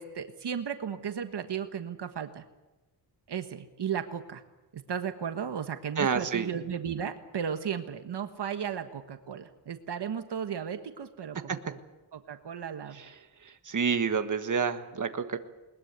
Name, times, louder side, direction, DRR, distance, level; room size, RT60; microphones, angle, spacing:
voice 1, 0.0-2.4 3.3-4.4 4.7-11.8 12.1-13.0, right 8 dB, 70° right, 8 dB, 1.5 m, -35 dB
voice 2, 6.0-6.5 11.5-11.6 12.9-13.1 13.4-15.4, right 6 dB, 45° right, 7 dB, 1.6 m, -29 dB
21.0 x 21.0 x 8.2 m, 1.1 s
wide cardioid pair, 95°, 42 cm